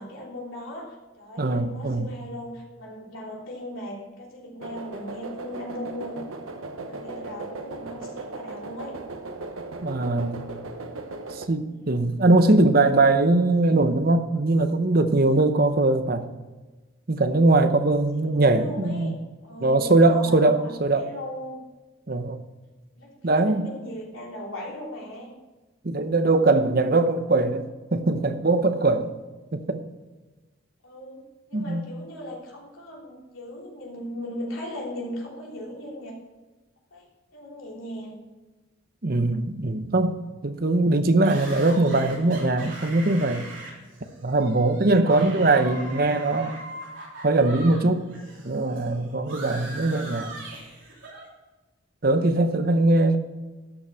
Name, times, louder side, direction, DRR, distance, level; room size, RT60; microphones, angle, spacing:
voice 1, 0.0-6.3 6.5-9.0 11.7-12.1 18.1-19.2 19.4-21.6 23.0-25.3 30.8-36.2 36.9-37.1 37.3-38.2, left 1 dB, 80° left, -2 dB, 3.2 m, -38 dB
voice 2, 1.4-2.1 9.8-10.4 11.3-16.3 17.1-19.1 19.6-21.0 22.1-22.4 23.2-23.7 25.8-29.1 29.5-29.8 31.5-31.8 39.0-40.1 40.4-43.5 44.2-46.6 47.2-48.0 48.4-50.3 52.0-53.2, right 2 dB, 45° right, 9 dB, 0.8 m, -21 dB
sound 1, 4.6-11.5, right 3 dB, 85° right, 1.0 m, -37 dB
sound 2, 41.2-47.8 48.1-51.3, right 2 dB, 65° right, 3.6 m, -41 dB
13.0 x 6.2 x 5.7 m, 1.2 s
head